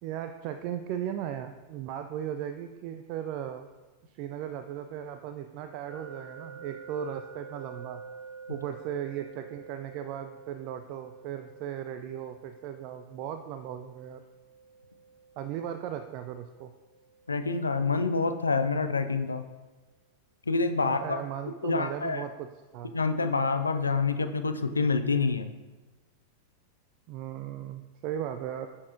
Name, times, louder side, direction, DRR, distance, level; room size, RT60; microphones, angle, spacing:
voice 1, 0.0-3.7 4.1-8.0 8.5-14.2 15.4-16.7 20.8-22.5 22.7-22.9 27.1-28.7, right 10 dB, 45° right, 8 dB, 0.3 m, -37 dB
sound 1, 5.9-18.8, right 5 dB, 25° right, 1.7 m, -49 dB
voice 2, 17.3-19.4 20.5-21.2 21.6-22.2 22.9-25.5, left 4 dB, 75° left, 9 dB, 0.4 m, -27 dB
9.5 x 6.1 x 2.5 m, 1.2 s
figure-of-eight pair, 90°, 0 cm